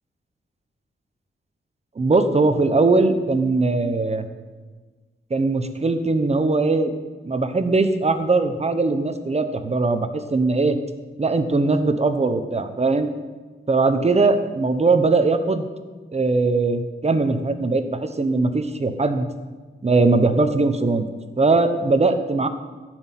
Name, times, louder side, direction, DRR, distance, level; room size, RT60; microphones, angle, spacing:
voice 1, 2.0-4.3 5.3-6.9 7.2-10.8 11.2-13.1 13.7-15.7 16.1-19.3 19.8-21.1 21.4-22.5, right 3 dB, 30° right, 9 dB, 1.0 m, -20 dB
15.0 x 6.3 x 9.1 m, 1.4 s
wide cardioid pair, 175°, 21 cm